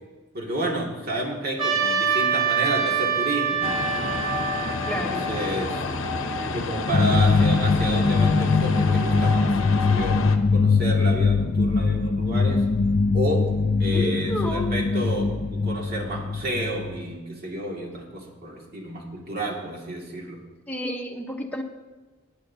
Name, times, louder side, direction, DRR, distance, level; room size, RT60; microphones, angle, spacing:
voice 1, 0.3-3.8 4.7-5.8 6.5-10.2 10.5-12.6 13.1-13.5 13.8-20.4, right 1 dB, 50° right, -1 dB, 2.1 m, -31 dB
Trumpet, 1.6-6.0, right 7 dB, 30° right, 2.1 m, -26 dB
sound 1, 3.6-10.4, left 3 dB, 75° left, 0.8 m, -29 dB
voice 2, 4.9-5.3 13.9-14.7 20.7-21.6, left 1 dB, 10° left, 1 dB, 0.9 m, -30 dB
sound 2, 6.9-17.1, left 4 dB, 35° left, 0.4 m, -22 dB
17.5 x 9.9 x 2.7 m, 1.2 s
head